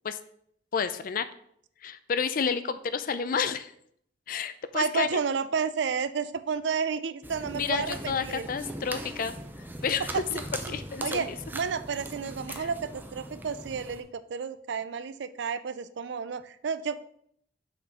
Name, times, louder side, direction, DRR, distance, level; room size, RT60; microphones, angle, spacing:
voice 1, 0.7-1.3 1.8-3.7 4.3-5.2 7.5-9.3 9.8-10.2 10.7-11.4 12.5-12.7, left 6 dB, 50° left, 13 dB, 0.4 m, -30 dB
voice 2, 4.7-8.5 10.1-10.4 10.7-17.0, right 6 dB, 70° right, 13 dB, 0.4 m, -31 dB
sound 1, 7.2-14.0, right 1 dB, 10° right, 0.5 m, -40 dB
5.9 x 4.2 x 4.8 m, 0.67 s
head